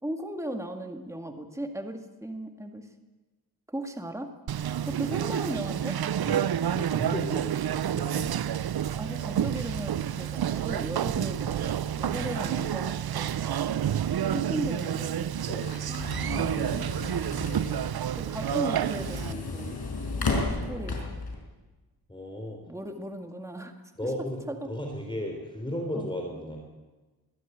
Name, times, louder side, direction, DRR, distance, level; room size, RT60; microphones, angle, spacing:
voice 1, 0.0-2.9 3.7-4.3 4.9-6.0 9.0-13.5 14.3-15.4 15.9-16.9 18.2-19.8 20.6-21.0 22.7-23.7 24.0-24.1 24.5-24.7 25.9-26.1, right 1 dB, 5° right, 5 dB, 2.0 m, -36 dB
Conversation, 4.5-19.3, right 10 dB, 70° right, 0.6 m, -29 dB
voice 2, 6.2-8.3 12.0-12.2 13.8-14.0 15.5-15.7 17.3-17.9 18.4-18.5 22.1-22.6 24.0-24.4 24.7-26.6, left 1 dB, 10° left, 1 dB, 3.8 m, -36 dB
sound 1, 14.8-21.3, left 3 dB, 75° left, 5.2 m, -34 dB
22.5 x 13.0 x 9.3 m, 1.2 s
wide cardioid pair, 70°, 39 cm